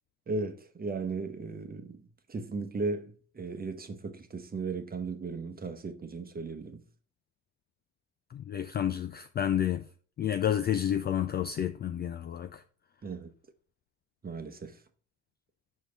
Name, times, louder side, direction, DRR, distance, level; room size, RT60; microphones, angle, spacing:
voice 1, 0.3-6.8 13.0-13.3 14.2-14.8, right 3 dB, 20° right, 1.0 m, -36 dB
voice 2, 8.3-9.8 10.2-12.6, left 10 dB, 25° left, 0.4 m, -30 dB
6.4 x 5.0 x 4.0 m
figure-of-eight pair, 55°, 44 cm